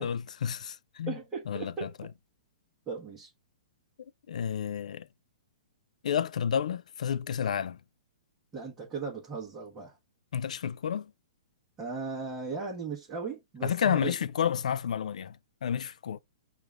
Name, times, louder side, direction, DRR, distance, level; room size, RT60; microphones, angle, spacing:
voice 1, 0.0-1.2 1.5-2.1 4.3-5.1 6.0-7.8 10.3-11.1 13.6-16.2, left 8 dB, 80° left, 0.4 m, -31 dB
voice 2, 1.1-1.9 2.9-3.3 8.5-10.0 11.8-14.1, right 4 dB, 15° right, 1.1 m, -37 dB
4.7 x 2.5 x 3.3 m
hypercardioid pair, 150°, 4 cm